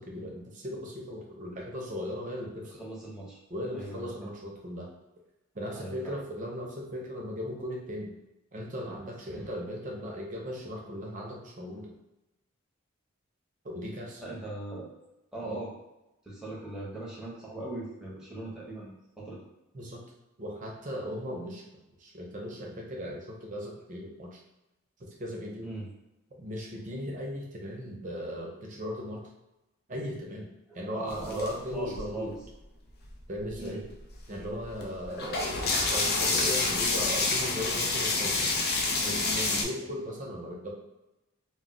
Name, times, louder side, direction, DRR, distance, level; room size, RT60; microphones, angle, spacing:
voice 1, 0.0-2.7 3.5-4.9 5.5-8.1 8.5-12.0 13.6-14.2 15.4-15.6 19.7-20.0 20.4-21.6 22.0-24.4 25.0-25.7 26.4-29.2 29.9-30.5 30.7-32.3 33.3-33.8 34.3-38.5 39.0-40.7, equal, 40° right, -1 dB, 0.6 m, -37 dB
voice 2, 2.7-3.4 3.7-4.3 5.7-6.2 9.3-9.5 14.2-14.9 15.3-15.7 16.3-19.4 25.6-25.9 30.9-32.4 33.6-33.8, right 2 dB, 5° right, -6 dB, 0.8 m, -39 dB
sound 1, 31.1-32.4 33.0-33.1 33.4-39.6, left 3 dB, 50° left, 0.4 m, -28 dB
2.2 x 2.1 x 3.7 m, 0.97 s
head